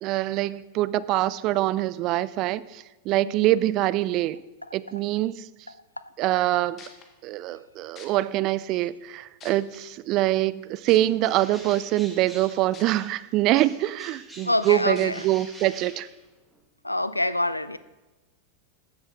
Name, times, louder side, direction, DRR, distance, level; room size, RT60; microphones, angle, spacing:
voice 1, 0.0-4.4 4.7-5.5 6.2-6.8 7.2-16.1, right 15 dB, 40° right, 0.3 m, -24 dB
voice 2, 3.2-3.6 14.4-15.2 16.8-17.8, left 1 dB, 85° left, 0.4 m, -26 dB
sound 1, 6.8-7.0 8.0-8.1 8.8-8.9 9.4-9.8 10.9-11.0 12.7-12.8 13.4-13.5 15.0-15.1 15.8-15.9, left 6 dB, 30° left, 1.2 m, -44 dB
Bird, 11.2-13.3 13.5-16.6, right 1 dB, 5° right, 1.9 m, -46 dB
14.5 x 6.3 x 3.6 m
figure-of-eight pair, 90°, 0 cm